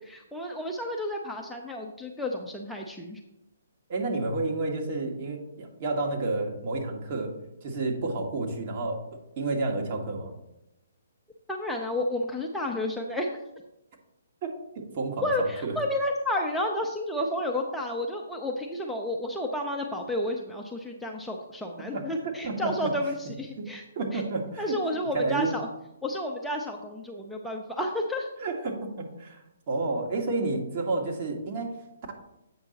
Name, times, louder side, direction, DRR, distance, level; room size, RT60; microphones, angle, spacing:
voice 1, 0.1-3.2 11.5-13.4 15.2-23.8 24.1-24.2 24.6-25.7 26.0-28.3, left 1 dB, ahead, -1 dB, 0.6 m, -31 dB
voice 2, 3.9-7.3 7.6-10.3 14.4-15.7 21.9-22.9 23.6-23.7 23.9-24.8 25.1-25.5 28.4-29.4 29.7-31.8, right 3 dB, 40° right, 1 dB, 1.5 m, -30 dB
8.0 x 5.5 x 4.0 m, 0.90 s
figure-of-eight pair, 135°, 0 cm